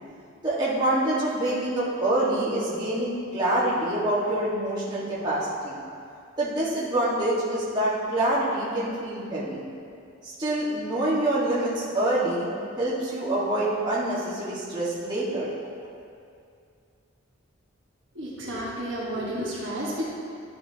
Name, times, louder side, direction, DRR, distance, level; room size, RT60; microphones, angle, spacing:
voice 1, 0.4-5.8 6.4-9.6 10.2-12.5 12.8-15.5, right 1 dB, 20° right, -9 dB, 1.5 m, -26 dB
voice 2, 18.1-20.1, equal, 60° right, -6 dB, 1.4 m, -31 dB
12.0 x 5.6 x 2.8 m, 2.4 s
head